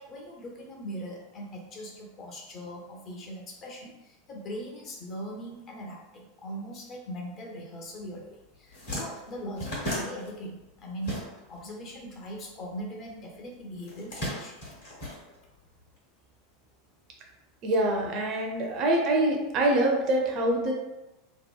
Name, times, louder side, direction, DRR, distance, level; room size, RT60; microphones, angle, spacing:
voice 1, 0.0-14.6, equal, 35° left, -1 dB, 0.6 m, -40 dB
sound 1, 8.2-8.3 8.5-11.7 12.0-13.1 13.8-15.8, equal, 65° left, 1.1 m, -36 dB
voice 2, 17.6-20.7, right 1 dB, 40° right, 0 dB, 0.5 m, -25 dB
2.8 x 2.1 x 2.2 m, 1.0 s
figure-of-eight pair, 80°, 0 cm